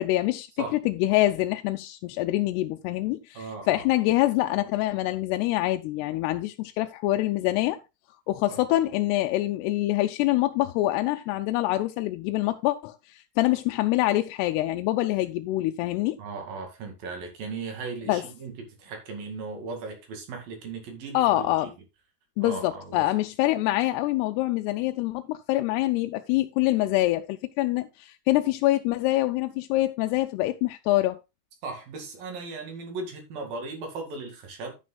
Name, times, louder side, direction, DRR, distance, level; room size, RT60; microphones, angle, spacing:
voice 1, 0.0-0.5 0.9-7.8 8.3-16.2 18.1-18.2 21.1-21.7 22.4-31.2, left 16 dB, 85° left, 2.7 m, -25 dB
voice 2, 3.4-3.8 8.5-8.6 16.2-21.7 22.4-23.0 31.6-34.8, right 4 dB, 65° right, 3.9 m, -37 dB
11.0 x 9.7 x 2.3 m
omnidirectional pair, 4.6 m